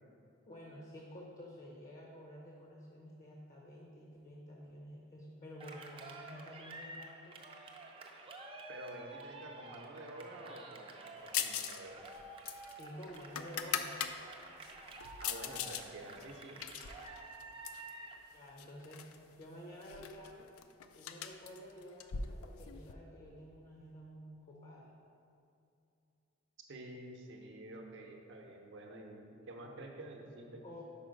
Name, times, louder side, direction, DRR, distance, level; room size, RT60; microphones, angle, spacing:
voice 1, 0.5-7.4 12.8-14.0 14.8-15.0 18.3-19.1 19.4-20.5 20.9-24.9 30.6-30.8, equal, 35° left, -2 dB, 0.7 m, -51 dB
Cheering, 5.6-18.2, right 2 dB, 25° right, 0.5 m, -50 dB
voice 2, 8.7-12.1 15.2-16.6 26.7-30.6, right 1 dB, 60° right, 1 dB, 0.8 m, -49 dB
sound 1, 11.3-11.8 12.1-14.1 14.6-15.8 16.2-17.9 18.6-19.2 19.4-19.5 19.8-22.9, left 8 dB, 80° left, 0.4 m, -40 dB
5.4 x 4.6 x 5.1 m, 2.6 s
head